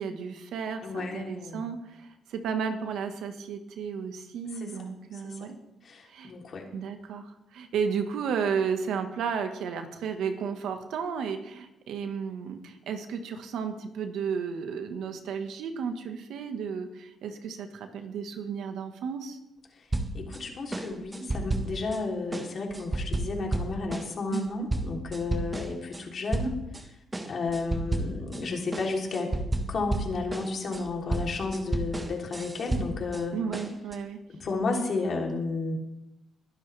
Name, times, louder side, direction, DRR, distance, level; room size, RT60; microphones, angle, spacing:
voice 1, 0.0-5.6 6.1-6.3 6.7-19.4 24.3-24.7 33.3-34.2, right 6 dB, 80° right, 6 dB, 1.6 m, -33 dB
voice 2, 0.8-1.6 4.6-4.9 5.2-5.4 5.8-6.7 20.1-26.5 27.2-29.3 29.7-33.3 34.3-35.8, left 3 dB, 50° left, 0 dB, 3.5 m, -32 dB
sound 1, 19.9-20.4 20.7-22.0 22.3-26.0 26.3-26.8 27.1-28.4 28.7-33.2 33.5-34.0, right 2 dB, 20° right, 1.6 m, -32 dB
22.0 x 10.5 x 3.5 m, 0.88 s
cardioid pair, 90°, 0 cm